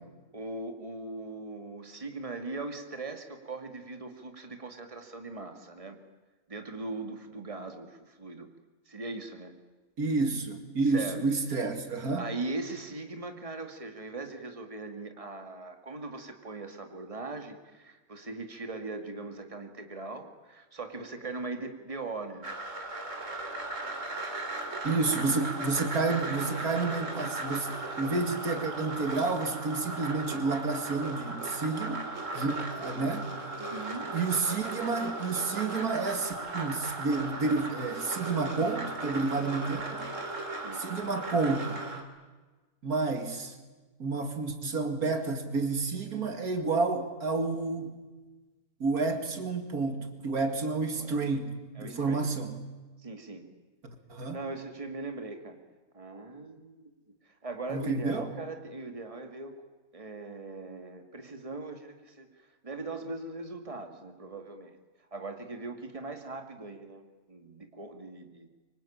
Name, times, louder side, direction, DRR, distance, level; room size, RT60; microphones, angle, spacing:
voice 1, 0.3-6.0 6.5-8.5 8.9-9.5 10.8-11.2 12.2-22.5 32.6-32.8 33.6-34.2 40.6-40.9 51.0-51.2 51.8-52.3 53.0-53.5 54.3-55.6 55.9-56.9 57.2-59.6 59.9-64.8 65.1-68.5, right 3 dB, 25° right, 5 dB, 2.3 m, -40 dB
voice 2, 10.0-12.2 24.8-33.3 34.1-40.1 40.7-41.8 42.8-43.6 44.0-48.0 48.8-52.5 54.1-54.4 57.7-58.3, right 3 dB, 90° right, 6 dB, 2.8 m, -30 dB
sound 1, 22.4-42.0, right 2 dB, 60° right, 3.4 m, -37 dB
25.0 x 25.0 x 8.8 m, 1.3 s
omnidirectional pair, 1.5 m